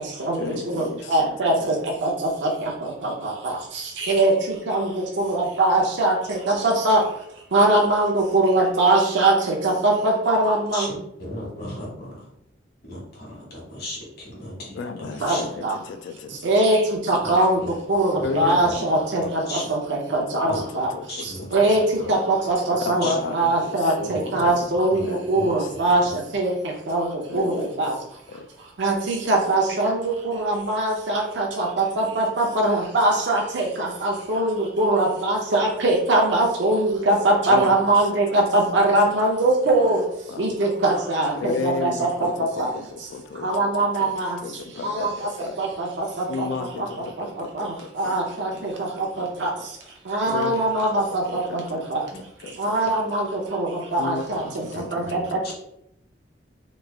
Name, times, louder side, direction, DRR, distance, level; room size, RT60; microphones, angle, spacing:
voice 1, 0.4-1.7 14.7-16.3 16.6-16.7 17.1-17.4 18.2-18.9 19.2-19.3 20.1-21.5 21.8-22.4 22.7-24.5 25.0-25.2 25.6-25.7 27.3-27.9 28.3-28.5 37.5-37.7 38.1-38.4 38.7-38.8 39.8-39.9 40.3-40.6 41.3-44.1 44.4-45.6 46.3-48.6 48.9-49.3 50.3-50.6 51.3-52.0 52.4-52.8 54.0-55.4, left 4 dB, 75° left, 8 dB, 0.3 m, -34 dB
voice 2, 1.1-1.7 2.0-2.1 2.4-3.6 4.0-4.3 4.7-4.9 5.2-7.0 7.5-10.9 15.2-15.7 16.4-16.8 17.1-17.6 17.9-19.6 20.1-20.9 21.5-21.8 22.1-26.0 26.3-26.5 26.9-27.1 27.3-27.9 28.8-40.0 40.4-42.3 42.6-42.7 43.4-44.4 44.8-45.1 45.6-45.7 46.0-46.1 46.4-46.5 47.5-47.7 48.0-48.7 49.0-49.1 49.4-49.5 50.1-51.6 51.9-52.0 52.6-55.5, right 2 dB, 70° right, 0 dB, 0.6 m, -21 dB
voice 3, 10.7-12.3 12.9-15.4 17.2-17.7 18.1-18.7 19.5-19.7 20.5-20.6 21.1-21.5 22.0-22.1 23.0-23.1 24.1-24.2 24.4-24.5 24.9-25.0 25.3-25.6 54.7-54.9 55.4-55.5, left 1 dB, 55° left, -3 dB, 1.3 m, -36 dB
3.1 x 2.4 x 3.3 m, 0.77 s
head